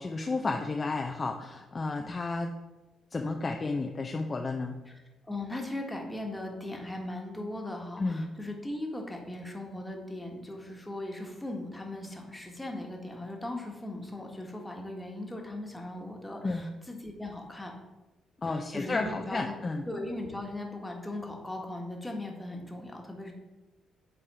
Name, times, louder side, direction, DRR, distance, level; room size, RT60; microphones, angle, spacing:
voice 1, 0.0-2.5 3.1-4.8 8.0-8.3 16.4-16.7 18.4-19.8, left 3 dB, 30° left, 3 dB, 0.5 m, -32 dB
voice 2, 4.9-17.7 18.4-19.6 19.9-23.3, left 1 dB, 10° left, 1 dB, 1.4 m, -38 dB
8.4 x 3.5 x 4.8 m, 1.1 s
cardioid pair, 90°, 0 cm